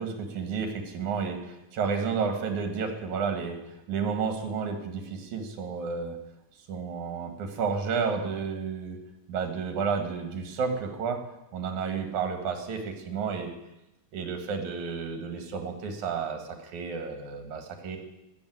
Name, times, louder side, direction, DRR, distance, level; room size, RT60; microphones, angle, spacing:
voice 1, 0.0-6.2 6.7-9.0 9.3-11.2 11.5-13.5 14.1-18.0, right 5 dB, 75° right, 6 dB, 3.0 m, -31 dB
14.0 x 7.0 x 9.2 m, 0.92 s
omnidirectional pair, 3.4 m